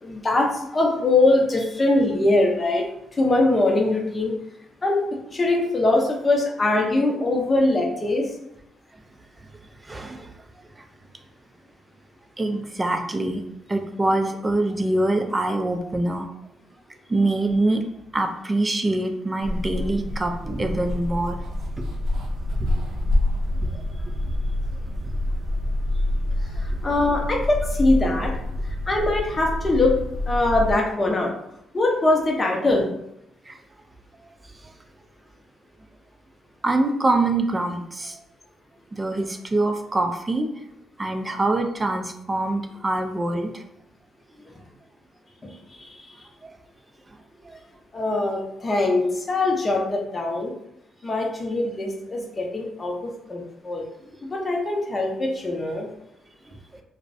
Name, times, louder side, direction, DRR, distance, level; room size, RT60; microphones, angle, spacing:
voice 1, 0.0-2.9 3.1-4.3 4.8-5.0 5.3-8.3 26.6-28.3 28.9-29.9 30.3-31.3 31.7-32.8 45.4-46.0 47.9-50.5 51.0-53.8 54.2-55.9, left 2 dB, 25° left, 0 dB, 0.6 m, -22 dB
voice 2, 9.9-10.3 12.4-13.4 13.7-16.3 17.1-17.8 18.1-21.4 21.8-21.9 22.6-22.7 23.7-23.8 33.5-33.6 36.6-38.2 38.9-40.5 41.0-43.6 47.4-47.6 56.7-56.8, right 2 dB, 20° right, 5 dB, 0.3 m, -24 dB
sound 1, 19.4-30.7, left 1 dB, 80° right, 0.5 m, -27 dB
2.4 x 2.0 x 2.5 m, 0.81 s
cardioid pair, 90°, 0 cm